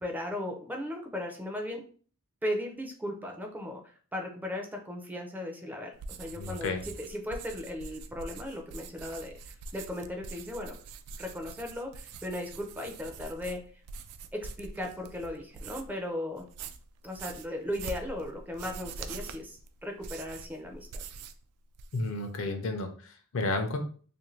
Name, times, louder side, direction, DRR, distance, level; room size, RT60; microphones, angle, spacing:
voice 1, 0.0-1.8 2.4-10.8 11.2-13.6 14.3-16.5 17.0-21.0, left 1 dB, 10° right, 3 dB, 0.4 m, -37 dB
sound 1, 5.9-16.0 16.4-21.4 21.7-22.2, right 4 dB, 75° right, 0.3 m, -44 dB
voice 2, 6.4-6.8 21.9-23.8, left 2 dB, 60° left, 6 dB, 0.5 m, -32 dB
2.6 x 2.5 x 3.1 m, 0.43 s
head